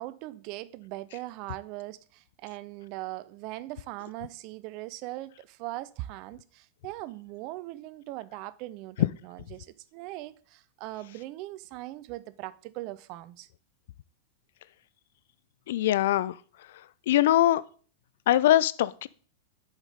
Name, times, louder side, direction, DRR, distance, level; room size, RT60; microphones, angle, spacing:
voice 1, 0.0-13.5, right 17 dB, 45° right, 0.4 m, -40 dB
voice 2, 15.7-16.4 17.1-17.6 18.3-19.1, left 13 dB, 60° left, 0.3 m, -22 dB
7.1 x 5.1 x 3.9 m
figure-of-eight pair, 95°, 0 cm